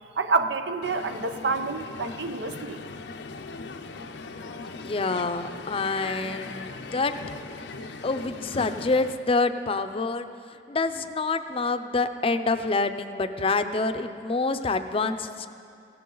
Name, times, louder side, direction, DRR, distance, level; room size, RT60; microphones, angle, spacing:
voice 1, 0.2-2.8, right 3 dB, 85° right, 9 dB, 0.7 m, -28 dB
Crowd, 0.8-9.1, left 3 dB, 90° left, 0.7 m, -39 dB
voice 2, 4.6-7.1 8.0-15.5, left 3 dB, 35° left, 10 dB, 0.6 m, -27 dB
17.0 x 16.0 x 3.9 m, 2.5 s
head